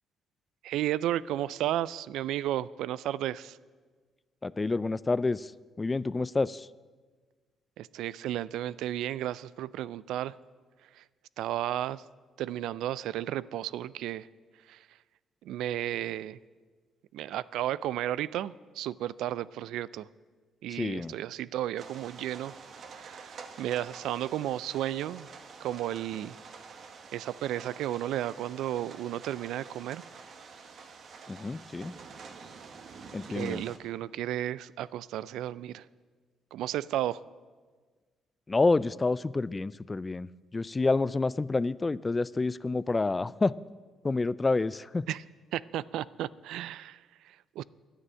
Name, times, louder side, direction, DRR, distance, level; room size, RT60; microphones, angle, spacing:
voice 1, 0.6-3.6 7.8-10.4 11.0-11.1 11.4-12.0 12.4-14.3 14.7-14.8 15.4-16.4 17.1-20.1 20.6-22.5 22.9-25.3 25.6-26.4 27.1-30.0 33.3-35.8 36.5-37.2 45.1-45.2 45.5-47.6, right 12 dB, 85° right, 19 dB, 0.3 m, -33 dB
voice 2, 4.4-5.5 5.8-6.7 20.7-21.1 31.3-31.9 33.1-33.6 38.5-40.3 40.5-43.5 44.0-45.0, left 3 dB, 25° left, 19 dB, 0.3 m, -28 dB
sound 1, 21.8-33.8, right 5 dB, 60° right, 1.4 m, -48 dB
11.0 x 9.6 x 8.9 m, 1.4 s
cardioid pair, 90°, 0 cm